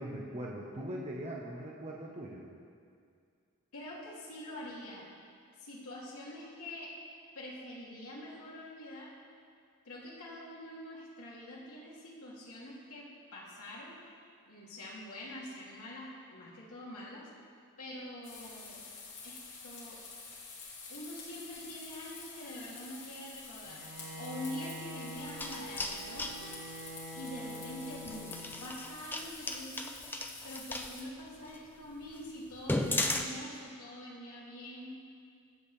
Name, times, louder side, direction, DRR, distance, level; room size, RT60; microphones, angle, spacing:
voice 1, 0.0-2.4, right 1 dB, 30° right, -4 dB, 1.3 m, -40 dB
voice 2, 3.7-5.1 5.6-6.9 7.3-9.1 9.8-14.0 14.5-17.2 17.8-18.8 19.2-20.0 20.9-23.8 24.2-26.5 27.1-29.9 30.4-35.0, left 1 dB, 75° left, -5 dB, 3.0 m, -45 dB
sound 1, 18.2-31.0, left 4 dB, 55° left, 2.8 m, -48 dB
Bowed string instrument, 23.6-29.0, equal, 50° right, 2.3 m, -46 dB
sound 2, 25.2-26.4 28.0-30.9 31.5-31.6 32.0-32.1 32.5-33.2, left 2 dB, 10° left, 0.6 m, -34 dB
23.0 x 8.0 x 3.4 m, 2.3 s
head